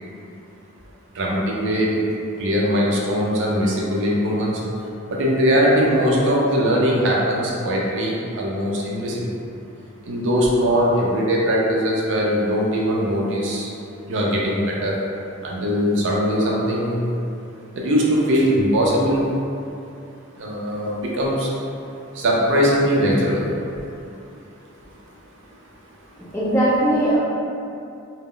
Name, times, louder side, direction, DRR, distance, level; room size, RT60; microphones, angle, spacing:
voice 1, 1.2-2.0 2.4-4.6 5.1-9.2 10.1-13.7 14.1-14.9 15.4-17.1 17.8-19.2 20.4-21.5 22.2-23.5, equal, 55° right, -3 dB, 0.4 m, -20 dB
voice 2, 26.3-27.2, right 1 dB, 10° left, -8 dB, 0.4 m, -19 dB
2.1 x 2.0 x 3.6 m, 2.6 s
head